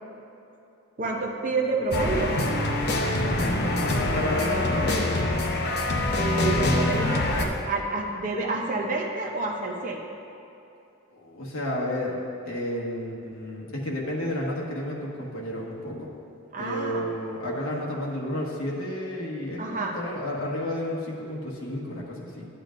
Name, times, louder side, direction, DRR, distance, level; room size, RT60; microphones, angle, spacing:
voice 1, 1.0-2.3 6.2-10.0 16.5-17.1 19.6-20.0, right 3 dB, 35° right, 0 dB, 0.6 m, -28 dB
sound 1, 1.9-7.4, left 2 dB, 45° left, 0.7 m, -25 dB
voice 2, 3.1-5.1 11.1-12.2 12.4-16.1 16.6-22.5, left 1 dB, 60° left, -4 dB, 1.4 m, -31 dB
11.5 x 8.2 x 2.5 m, 2.8 s
head